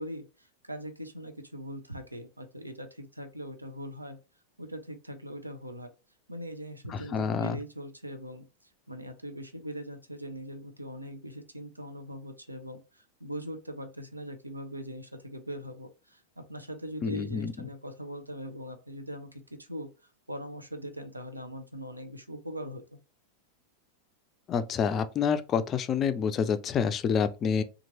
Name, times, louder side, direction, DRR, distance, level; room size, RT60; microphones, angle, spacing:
voice 1, 0.0-4.2 4.6-5.9 6.3-8.5 8.9-19.9 20.3-23.0, equal, 85° right, 0.5 m, -41 dB
voice 2, 7.1-7.6 17.0-17.5 24.5-27.6, left 6 dB, 30° left, 0.3 m, -27 dB
2.9 x 2.4 x 2.9 m
figure-of-eight pair, 90°, 0 cm